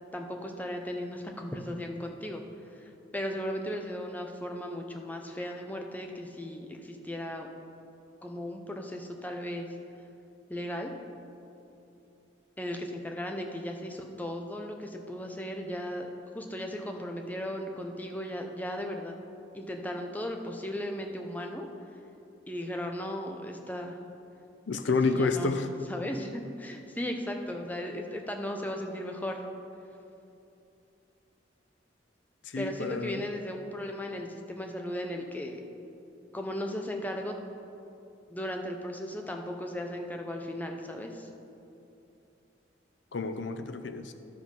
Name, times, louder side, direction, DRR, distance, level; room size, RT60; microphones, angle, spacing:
voice 1, 0.1-2.4 2.7-7.5 8.2-9.7 10.5-10.9 12.6-16.1 16.3-19.2 19.5-21.7 22.5-24.0 25.0-25.5 25.9-29.4 32.6-35.6 36.3-37.3 38.3-41.3, left 1 dB, 10° left, 3 dB, 0.6 m, -36 dB
voice 2, 24.7-25.7 32.4-33.2 43.1-44.1, left 4 dB, 85° left, 9 dB, 0.6 m, -29 dB
11.5 x 5.2 x 5.3 m, 2.7 s
head